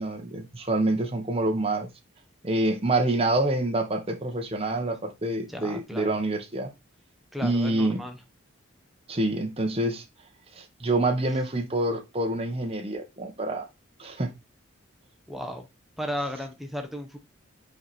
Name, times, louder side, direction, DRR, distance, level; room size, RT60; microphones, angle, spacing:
voice 1, 0.0-1.9 2.4-6.7 7.4-8.0 9.1-10.0 10.5-13.7 14.0-14.3, right 2 dB, 30° right, 1.2 m, -27 dB
voice 2, 5.5-6.2 7.3-8.2 15.3-15.7 16.0-17.2, equal, ahead, 0.8 m, -34 dB
5.0 x 4.8 x 4.3 m
head